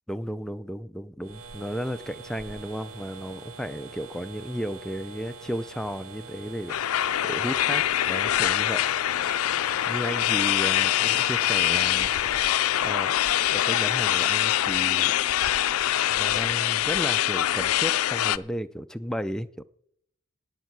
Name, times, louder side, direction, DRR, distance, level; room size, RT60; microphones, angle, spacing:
voice 1, 0.1-6.8 7.2-8.8 9.9-12.1 12.4-13.2 13.5-15.2 15.6-19.6, equal, 5° left, 10 dB, 0.4 m, -34 dB
sound 1, 1.2-12.9, right 5 dB, 80° right, 0.7 m, -44 dB
sound 2, 6.7-18.4, left 12 dB, 80° left, 0.4 m, -24 dB
17.5 x 6.4 x 6.0 m, 0.69 s
head